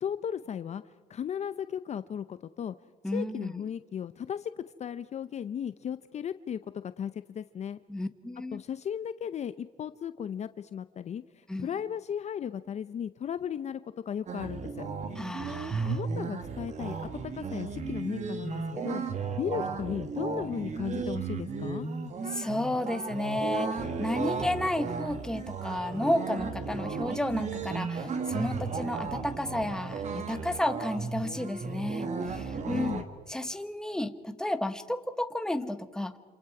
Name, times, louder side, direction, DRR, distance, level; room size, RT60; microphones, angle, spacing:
voice 1, 0.0-0.8 1.1-2.8 3.1-7.8 8.5-14.9 15.8-17.1 17.3-21.9 32.7-33.0, left 8 dB, 40° left, 13 dB, 0.6 m, -36 dB
voice 2, 3.0-3.6 7.9-8.6 11.5-11.7 15.2-15.9 22.3-33.0 33.3-36.2, left 1 dB, 5° left, 9 dB, 1.2 m, -32 dB
sound 1, 14.3-33.0, right 5 dB, 45° right, 1.9 m, -35 dB
28.0 x 27.0 x 4.9 m, 1.5 s
cardioid pair, 110°, 17 cm